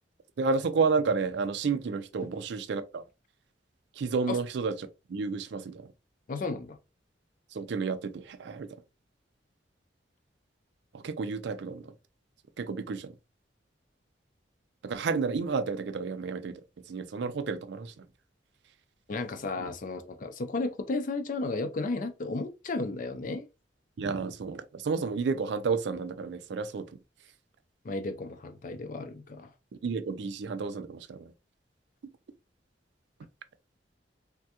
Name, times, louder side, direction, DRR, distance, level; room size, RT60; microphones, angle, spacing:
voice 1, 0.4-3.0 4.0-4.7 5.1-5.9 7.5-8.7 10.9-11.9 12.6-13.1 14.8-16.6 16.9-17.9 24.0-26.9 29.8-31.3, right 4 dB, 65° right, 0.4 m, -31 dB
voice 2, 6.3-6.8 19.1-23.4 27.8-29.5, left 3 dB, 45° left, 0.5 m, -33 dB
3.4 x 2.2 x 2.8 m
head